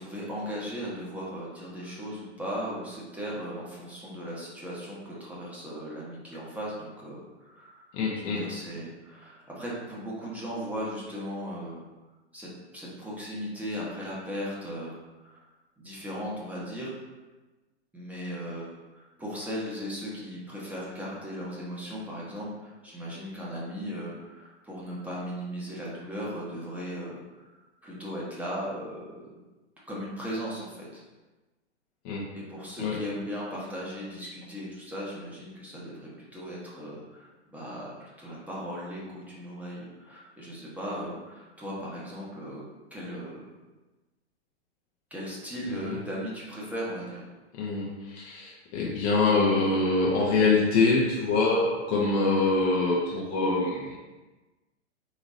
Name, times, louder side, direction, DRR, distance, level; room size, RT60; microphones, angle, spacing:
voice 1, 0.0-11.9 12.3-15.5 15.8-16.9 17.9-29.2 29.9-31.0 32.3-42.6 42.9-43.5 45.1-47.3, equal, 5° right, -6 dB, 1.0 m, -37 dB
voice 2, 7.9-8.4 32.0-32.3 32.8-33.0 47.5-54.0, left 3 dB, 35° left, -3 dB, 0.7 m, -25 dB
4.1 x 2.9 x 3.6 m, 1.2 s
figure-of-eight pair, 105°, 34 cm